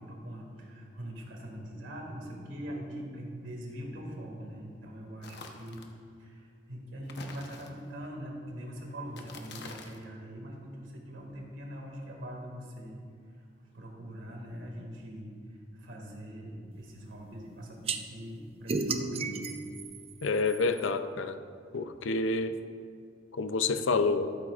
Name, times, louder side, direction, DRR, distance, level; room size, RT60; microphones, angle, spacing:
voice 1, 0.0-5.8 6.2-13.0 13.7-19.6 20.1-20.2, equal, 80° right, 0 dB, 2.2 m, -42 dB
sound 1, 5.2-5.9 7.0-8.1 9.1-10.1, left 3 dB, 60° left, 1.0 m, -47 dB
sound 2, 17.9-18.0 18.7-20.9, right 4 dB, 30° right, 0.5 m, -33 dB
voice 2, 20.2-21.4 21.7-22.6 23.4-24.3, left 3 dB, 85° left, 10 dB, 0.6 m, -28 dB
13.5 x 12.0 x 2.5 m, 2.3 s
head